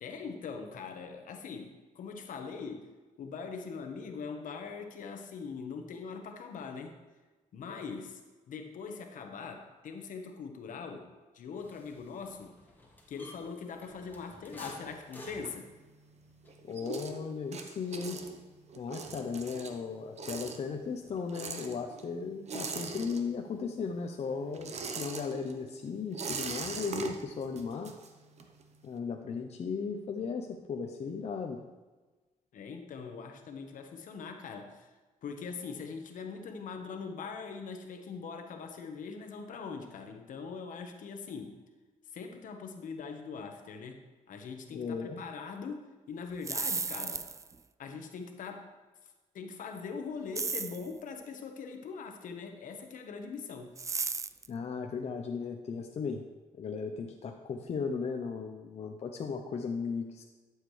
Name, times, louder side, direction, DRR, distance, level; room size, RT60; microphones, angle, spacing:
voice 1, 0.0-2.9 3.2-7.0 7.5-8.2 8.5-11.1 11.3-12.6 13.1-15.7 32.5-34.9 35.2-41.6 42.1-44.0 44.3-47.3 47.8-48.7 49.3-53.7, left 5 dB, 70° left, 5 dB, 1.2 m, -42 dB
sound 1, 11.6-19.7 20.0-21.1, left 1 dB, 15° left, 1.6 m, -54 dB
sound 2, 14.5-16.1 16.4-23.7 23.9-28.6, right 4 dB, 50° right, 1.0 m, -41 dB
voice 2, 16.6-18.2 18.8-27.9 28.8-31.6 44.7-45.2 54.5-56.2 56.5-60.2, left 5 dB, 50° left, 3 dB, 0.7 m, -36 dB
sound 3, 46.3-47.5 50.3-50.9 53.8-54.5, right 4 dB, 20° right, 0.3 m, -34 dB
12.0 x 7.4 x 3.2 m, 1.2 s
cardioid pair, 100°, 14 cm